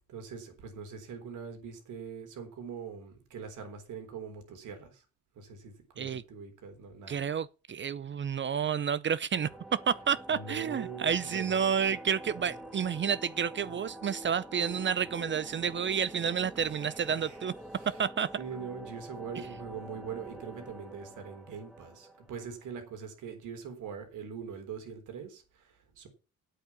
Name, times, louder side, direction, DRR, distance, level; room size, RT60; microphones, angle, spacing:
voice 1, 0.0-5.0 5.3-7.2 10.3-11.6 16.6-17.4 17.8-18.0 18.4-26.1, right 6 dB, 80° right, 3.8 m, -43 dB
voice 2, 7.1-17.5 18.0-18.3, right 7 dB, 40° right, 0.6 m, -30 dB
sound 1, 9.3-22.9, right 1 dB, 5° right, 2.0 m, -47 dB
8.6 x 8.4 x 7.1 m
cardioid pair, 90°, 30 cm